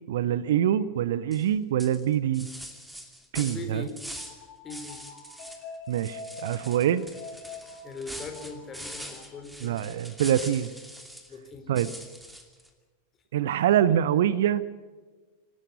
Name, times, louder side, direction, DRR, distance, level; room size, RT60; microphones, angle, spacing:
voice 1, 0.1-2.5 3.3-3.9 5.9-7.0 9.6-10.7 11.7-11.9 13.3-14.6, right 10 dB, 55° right, 18 dB, 0.7 m, -25 dB
sound 1, 1.3-1.5 1.8-4.4 4.7-5.6 5.9-11.3 11.8-12.7, equal, 5° right, 2.6 m, -43 dB
voice 2, 3.4-3.9 4.6-5.0 7.8-9.8 11.3-11.7, left 3 dB, 25° left, 6 dB, 3.7 m, -40 dB
sound 2, 4.0-9.4, left 3 dB, 40° left, 5.5 m, -45 dB
26.0 x 13.0 x 9.7 m, 1.3 s
figure-of-eight pair, 90°, 0 cm